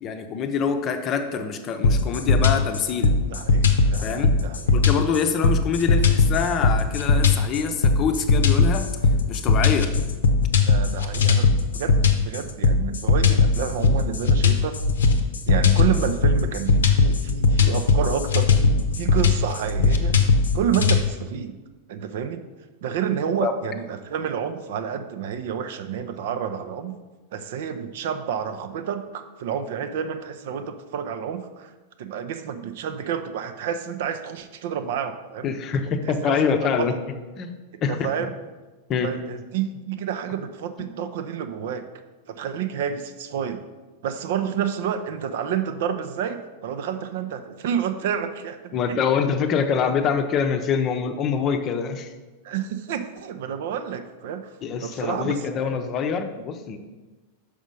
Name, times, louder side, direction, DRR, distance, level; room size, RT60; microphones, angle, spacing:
voice 1, 0.0-3.2 4.0-4.4 4.7-8.9 9.3-10.0 23.4-23.5 35.4-36.9 37.4-37.5 37.8-38.1 38.9-39.1 40.8-40.9 48.7-52.1 54.6-56.8, left 6 dB, 35° left, 6 dB, 0.7 m, -25 dB
sound 1, 1.8-21.0, left 4 dB, 65° left, 0.7 m, -19 dB
voice 2, 3.3-4.7 10.7-12.0 12.2-14.8 15.5-20.2 20.5-21.5 21.9-22.4 22.8-27.0 27.3-31.7 32.0-35.5 36.2-36.4 36.6-36.9 37.9-38.3 39.0-41.9 42.3-43.6 44.0-49.0 52.4-54.5 54.8-55.4, right 8 dB, 55° right, 9 dB, 0.5 m, -29 dB
6.2 x 5.0 x 5.3 m, 1.2 s
figure-of-eight pair, 90°, 0 cm